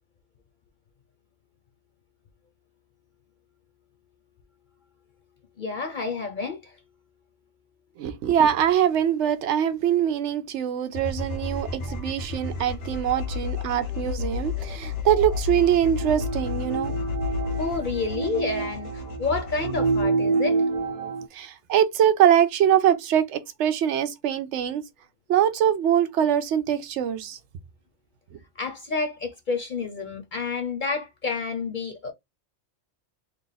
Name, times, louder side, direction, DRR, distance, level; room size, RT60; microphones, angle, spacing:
voice 1, 5.6-6.8 11.9-12.0 13.1-13.2 17.6-20.6 28.6-32.1, left 4 dB, 50° left, 0.8 m, -29 dB
voice 2, 8.0-16.9 21.3-24.8 25.3-27.4, right 10 dB, 90° right, 0.9 m, -23 dB
sound 1, 10.9-20.0, left 5 dB, 85° left, 1.3 m, -32 dB
sound 2, 16.0-21.3, right 4 dB, 55° right, 0.4 m, -27 dB
3.3 x 2.4 x 3.9 m
omnidirectional pair, 1.2 m